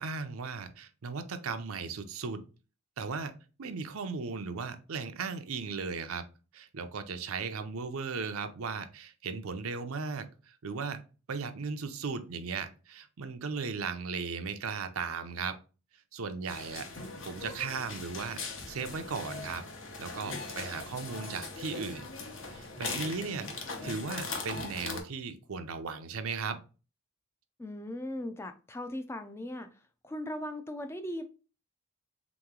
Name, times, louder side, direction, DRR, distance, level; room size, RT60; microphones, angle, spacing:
voice 1, 0.0-2.4 3.0-6.2 6.5-11.0 11.3-15.6 16.1-16.9 17.3-18.4 18.7-19.6 20.0-22.1 22.5-26.6, right 5 dB, 85° right, 9 dB, 0.6 m, -37 dB
sound 1, 16.5-25.0, left 4 dB, 60° left, 0.9 m, -40 dB
voice 2, 27.6-31.2, left 1 dB, 10° left, 8 dB, 0.3 m, -38 dB
3.7 x 3.0 x 3.6 m, 0.34 s
head